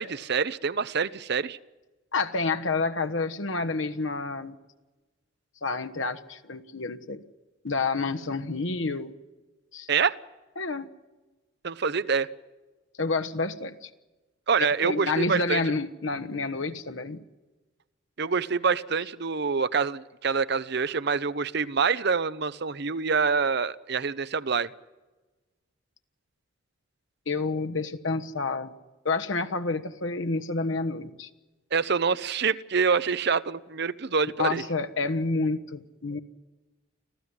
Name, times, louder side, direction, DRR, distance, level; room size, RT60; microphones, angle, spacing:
voice 1, 0.0-1.6 9.9-10.2 11.6-12.3 14.5-15.6 18.2-24.7 31.7-34.6, right 5 dB, 55° right, 16 dB, 0.7 m, -26 dB
voice 2, 2.1-4.5 5.6-7.2 7.6-9.1 9.7-9.9 10.6-10.9 13.0-13.9 14.8-17.2 27.3-28.7 29.0-31.3 34.4-36.2, left 3 dB, 70° left, 8 dB, 1.3 m, -29 dB
26.0 x 15.5 x 9.8 m, 1.2 s
head